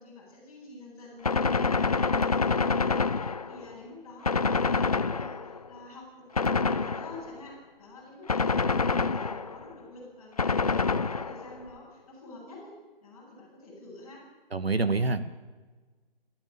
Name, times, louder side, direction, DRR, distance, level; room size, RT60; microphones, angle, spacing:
voice 1, 0.0-12.7 13.0-14.2, left 2 dB, 10° left, -6 dB, 7.8 m, -48 dB
Gunshot gunfire, 1.2-3.7 4.3-5.7 6.4-7.4 8.3-9.7 10.4-11.6, left 4 dB, 40° left, 0.8 m, -26 dB
voice 2, 14.5-15.3, right 3 dB, 80° right, 11 dB, 1.9 m, -26 dB
28.0 x 14.5 x 7.2 m, 1.3 s
figure-of-eight pair, 165°, 30 cm